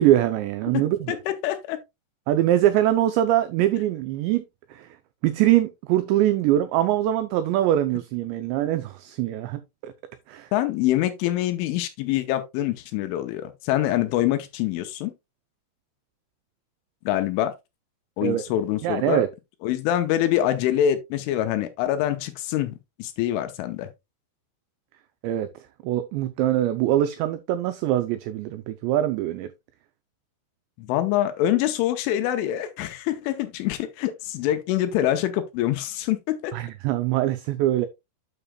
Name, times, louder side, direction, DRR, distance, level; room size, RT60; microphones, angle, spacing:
voice 1, 0.0-1.2 2.3-4.4 4.7-4.9 5.2-9.9 10.3-10.5 18.2-18.4 18.8-19.3 25.2-25.5 25.8-29.5 36.5-37.9, right 13 dB, 90° right, 2.5 m, -23 dB
voice 2, 1.1-1.8 10.5-15.1 17.1-17.5 18.2-19.2 19.6-23.9 30.8-36.5, left 12 dB, 80° left, 3.1 m, -25 dB
8.9 x 6.7 x 2.2 m
omnidirectional pair, 5.6 m